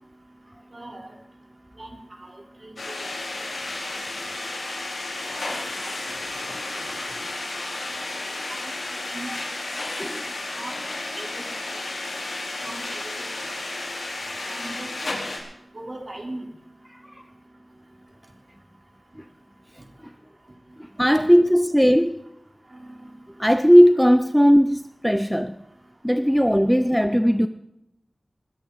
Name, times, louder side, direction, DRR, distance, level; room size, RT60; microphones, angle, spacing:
voice 1, 0.7-1.1 1.8-2.0 2.6-3.1 3.8-3.9 5.5-5.9 8.5-8.7 9.1-9.4 10.6-10.7 11.2-11.4 11.7-11.9 12.6-13.3 14.5-15.1 15.7-16.4 22.8-23.0, right 1 dB, 45° right, 3.6 m, -38 dB
sound 1, 2.8-15.4, left 2 dB, 75° left, 3.7 m, -32 dB
voice 2, 7.0-7.5 10.0-10.2 21.0-22.2 23.4-25.6 26.0-27.5, equal, ahead, 0.6 m, -18 dB
20.5 x 13.5 x 4.0 m
wide cardioid pair, 55°, 0 cm